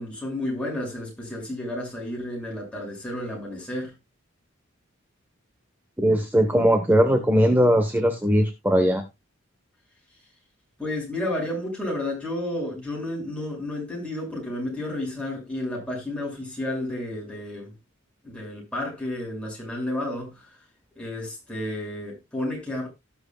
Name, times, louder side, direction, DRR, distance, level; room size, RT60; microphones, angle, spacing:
voice 1, 0.0-3.9 10.8-17.8 18.2-20.6 21.0-22.9, left 1 dB, 5° left, 6.2 m, -31 dB
voice 2, 6.0-9.0, equal, 10° right, 1.1 m, -20 dB
18.5 x 6.2 x 2.4 m
head